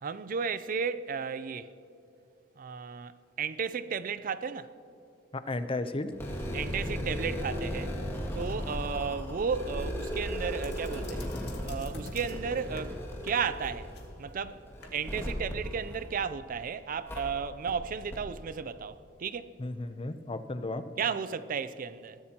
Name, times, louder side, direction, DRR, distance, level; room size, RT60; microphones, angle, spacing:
voice 1, 0.0-1.7 2.6-4.7 6.5-8.0 8.3-11.3 11.6-13.0 13.2-13.9 14.2-14.6 14.9-19.5 21.0-22.2, right 6 dB, 45° right, 0.4 m, -34 dB
voice 2, 5.3-6.1 19.6-20.8, left 2 dB, 30° left, 0.6 m, -34 dB
sound 1, 6.1-16.5 17.1-17.2 17.7-17.8 18.1-18.2, equal, 15° left, 2.0 m, -36 dB
sound 2, 9.8-14.9, left 2 dB, 60° left, 2.1 m, -49 dB
21.5 x 14.5 x 2.9 m
head